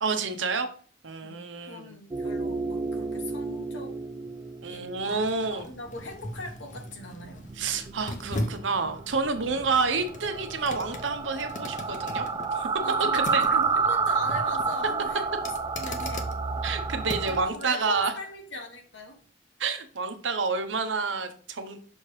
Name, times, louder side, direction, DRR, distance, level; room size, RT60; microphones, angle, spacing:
voice 1, 0.0-0.7 1.0-2.0 4.6-5.7 7.6-12.3 12.5-12.7 13.1-13.4 16.6-18.1 19.6-21.8, right 4 dB, 85° right, 7 dB, 0.9 m, -29 dB
voice 2, 1.2-3.9 4.7-7.5 9.4-9.6 12.8-15.4 15.8-16.3 17.2-19.2, left 2 dB, 75° left, 2 dB, 1.5 m, -40 dB
sound 1, 2.1-17.5, right 4 dB, 25° right, 0.4 m, -31 dB
sound 2, 2.8-17.5 18.0-18.1, left 1 dB, 45° left, 0.8 m, -40 dB
6.3 x 3.2 x 4.7 m, 0.43 s
head